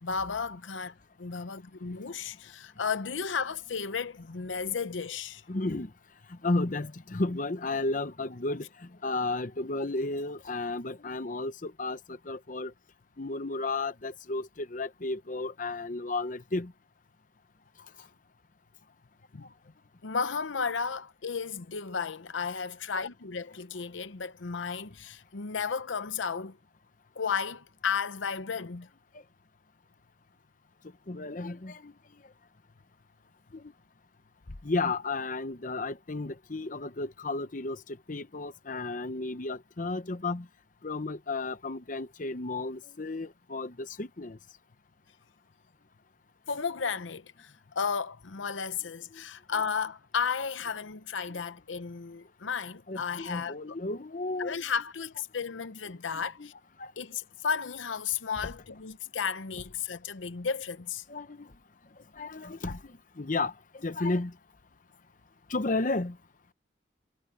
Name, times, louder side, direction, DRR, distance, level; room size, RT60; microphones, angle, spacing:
voice 1, 0.0-5.4 9.7-9.8 19.3-19.5 20.0-26.6 27.2-28.9 46.5-53.8 54.4-56.5 57.0-61.0, left 6 dB, 80° left, 0.8 m, -33 dB
voice 2, 5.5-5.9 6.3-12.7 13.2-16.7 31.1-31.9 33.5-33.6 34.6-37.8 38.1-40.5 40.8-44.4 49.1-49.2 51.3-51.4 52.9-54.6 56.1-56.5 56.8-56.9 61.1-61.5 62.2-64.3 65.5-66.2, left 2 dB, 45° left, 0.9 m, -33 dB
head